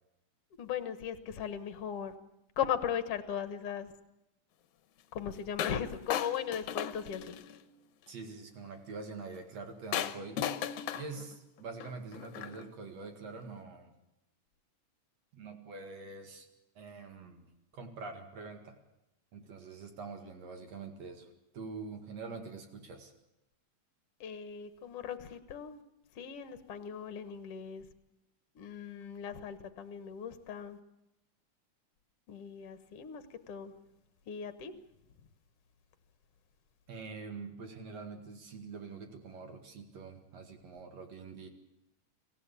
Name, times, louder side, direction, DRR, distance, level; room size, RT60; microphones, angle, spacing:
voice 1, 0.6-2.2 2.6-3.9 5.1-7.4 24.2-25.8 26.1-27.9 28.6-30.8 32.3-33.7 34.2-34.7, left 8 dB, 55° left, 2.1 m, -38 dB
sound 1, 5.6-5.8 6.1-7.6 9.9-12.7, left 10 dB, 75° left, 2.3 m, -36 dB
voice 2, 8.1-10.6 10.9-13.9 15.3-16.5 16.8-17.5 17.7-18.7 19.3-21.3 21.5-23.1 36.9-41.5, right 4 dB, 60° right, 3.1 m, -45 dB
26.0 x 15.5 x 8.5 m
omnidirectional pair, 3.6 m